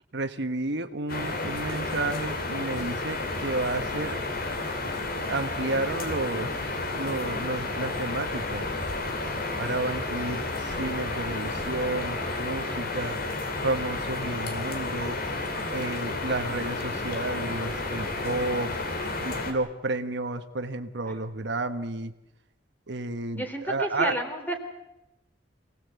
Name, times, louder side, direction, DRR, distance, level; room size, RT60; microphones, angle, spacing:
voice 1, 0.1-4.2 5.3-6.5 6.9-8.7 9.6-13.2 13.6-15.2 15.7-18.8 19.2-22.1 22.9-24.1, right 2 dB, 70° right, 8 dB, 1.3 m, -31 dB
sound 1, 1.1-19.5, left 2 dB, 55° left, 3.4 m, -31 dB
voice 2, 23.3-24.6, right 1 dB, 10° left, 4 dB, 3.5 m, -31 dB
27.0 x 18.0 x 8.2 m, 0.91 s
head